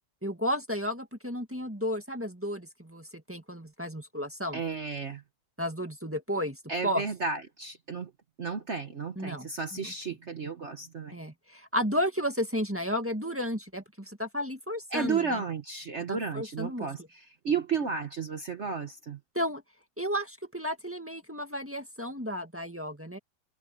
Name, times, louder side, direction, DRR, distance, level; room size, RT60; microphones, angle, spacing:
voice 1, 0.2-4.6 5.6-6.6 6.8-7.0 9.1-10.2 11.1-15.4 16.1-16.9 19.3-19.6 20.0-23.2, equal, 5° right, 1.6 m, -33 dB
voice 2, 4.5-5.2 6.7-8.1 8.4-11.2 14.9-19.2, right 5 dB, 45° right, 1.3 m, -33 dB
omnidirectional pair, 2.0 m